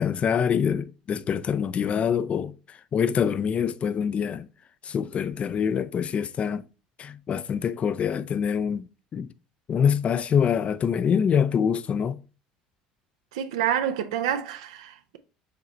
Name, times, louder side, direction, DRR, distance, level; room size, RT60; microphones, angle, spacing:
voice 1, 0.0-2.5 2.9-4.5 4.8-6.6 7.0-8.9 9.1-9.3 9.7-12.2, left 7 dB, 40° left, 0.3 m, -25 dB
voice 2, 13.3-15.2, right 10 dB, 80° right, 0.5 m, -28 dB
4.9 x 3.2 x 2.9 m
hypercardioid pair, 75°, 3 cm